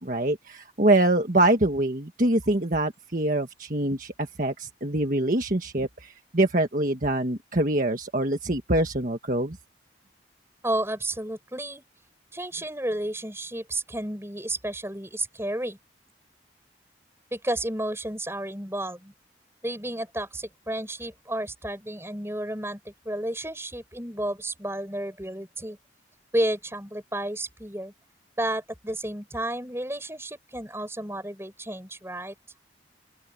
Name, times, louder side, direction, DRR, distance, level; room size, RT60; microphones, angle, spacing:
voice 1, 0.0-9.6, right 1 dB, 45° right, 1.5 m, -24 dB
voice 2, 10.6-11.8 12.3-15.8 17.3-19.1 19.6-25.8 26.3-27.9 28.4-32.3, right 1 dB, 15° right, 7.4 m, -32 dB
open air
head